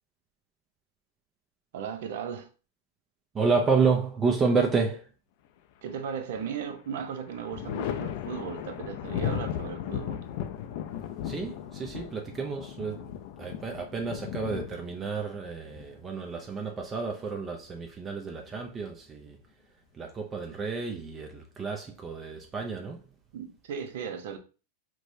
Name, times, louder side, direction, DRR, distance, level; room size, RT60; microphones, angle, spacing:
voice 1, 1.7-2.5 5.8-10.2 23.3-24.4, right 7 dB, 70° right, 0.6 m, -36 dB
voice 2, 3.3-5.1 11.2-13.1 13.4-19.4 19.9-23.0, right 4 dB, 20° right, 0.5 m, -30 dB
Thunder, 5.9-6.6 7.0-16.6 18.1-18.9, left 9 dB, 55° left, 0.3 m, -36 dB
4.5 x 2.1 x 2.6 m
hypercardioid pair, 125°, 0 cm